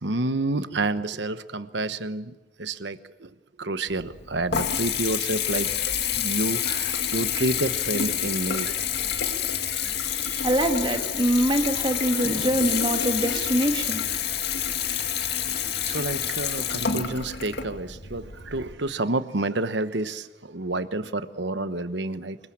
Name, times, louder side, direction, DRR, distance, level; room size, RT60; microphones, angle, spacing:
voice 1, 0.0-8.9 9.8-10.5 15.8-22.4, right 2 dB, 60° right, 12 dB, 1.1 m, -29 dB
Water tap faucet / Bathtub (filling or washing) / Trickle dribble, 3.9-18.7, left 8 dB, 55° left, 2.2 m, -28 dB
voice 2, 10.4-14.0, right 1 dB, 25° right, 4 dB, 1.9 m, -24 dB
26.5 x 21.5 x 8.6 m, 1.1 s
head